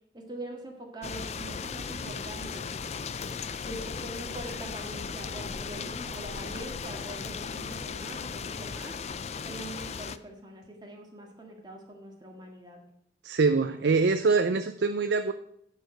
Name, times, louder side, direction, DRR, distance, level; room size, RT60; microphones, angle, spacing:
voice 1, 0.1-2.6 3.6-9.0 9.4-12.8, right 1 dB, 25° right, 1 dB, 1.8 m, -43 dB
sound 1, 1.0-10.2, left 5 dB, 35° left, 0.4 m, -37 dB
voice 2, 13.2-15.3, right 4 dB, 75° right, 9 dB, 0.5 m, -24 dB
10.5 x 4.9 x 6.6 m, 0.71 s
head